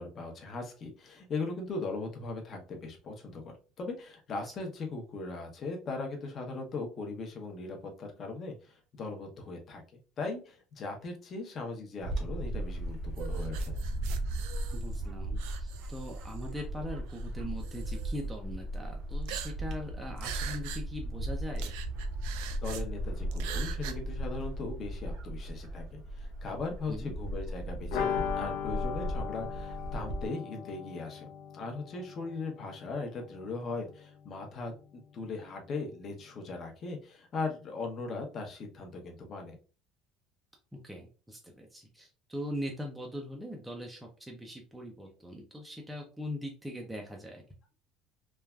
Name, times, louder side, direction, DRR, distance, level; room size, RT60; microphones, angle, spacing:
voice 1, 0.0-9.8 10.2-13.8 22.6-31.3 31.5-39.6, left 3 dB, 35° left, 2 dB, 0.7 m, -39 dB
Bird / Wind, 12.0-30.3, right 1 dB, 50° right, 0.7 m, -36 dB
sound 1, 13.2-15.0 15.4-16.5 17.1-17.2 17.6-18.1 19.2-19.8 20.2-20.8 21.1-21.2 21.6-22.8 23.3-23.9, right 7 dB, 85° right, 0.4 m, -42 dB
voice 2, 14.7-21.7 26.9-27.1 40.8-47.4, equal, 5° right, 0 dB, 0.4 m, -41 dB
sound 2, 27.9-33.5 33.8-33.9 34.2-34.3, left 8 dB, 85° left, 0.6 m, -37 dB
3.2 x 2.3 x 2.3 m, 0.36 s
cardioid pair, 155°, 0 cm